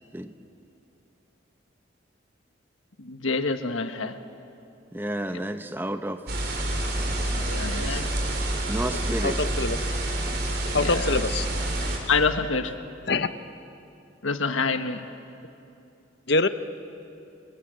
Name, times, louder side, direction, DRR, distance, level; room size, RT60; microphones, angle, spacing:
voice 1, 3.0-4.2 7.4-8.1 10.7-11.2 12.1-12.7 14.2-15.0, left 4 dB, 90° left, 8 dB, 1.5 m, -27 dB
voice 2, 4.9-6.2 7.7-8.0 8.7-9.4, right 1 dB, 10° right, 8 dB, 0.9 m, -31 dB
sound 1, 6.3-12.0, right 1 dB, 50° right, 4.4 m, -28 dB
voice 3, 9.2-9.8 10.7-11.5 13.1-13.3 16.3-16.5, left 3 dB, 55° left, 10 dB, 1.0 m, -24 dB
29.5 x 25.5 x 7.9 m, 2.8 s
head